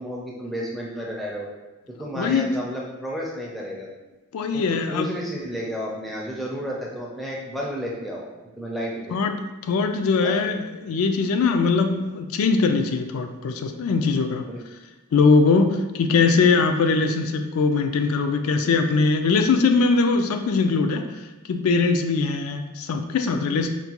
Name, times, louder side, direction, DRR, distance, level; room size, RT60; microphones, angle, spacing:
voice 1, 0.0-1.5 2.0-3.9 4.5-8.3 8.6-9.2 10.2-10.3 14.4-14.6, equal, ahead, -4 dB, 0.4 m, -31 dB
voice 2, 2.1-2.5 4.3-5.1 9.1-9.3 9.6-14.5 15.1-23.7, left 4 dB, 75° left, 6 dB, 0.3 m, -21 dB
4.5 x 2.2 x 2.9 m, 1.1 s
head